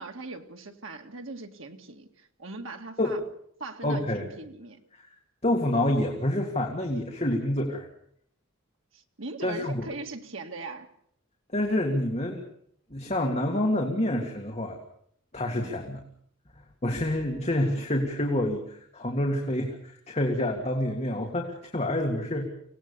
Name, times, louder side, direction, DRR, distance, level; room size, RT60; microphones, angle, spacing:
voice 1, 0.0-3.2 3.6-4.8 8.9-10.9 15.6-15.8, right 3 dB, 65° right, 4 dB, 2.1 m, -40 dB
voice 2, 3.8-4.3 5.0-5.1 5.4-7.9 9.4-9.9 11.5-12.4 12.9-14.8 15.3-16.0 16.8-22.5, left 1 dB, 30° left, 1 dB, 2.0 m, -27 dB
25.0 x 18.0 x 7.0 m, 0.68 s
head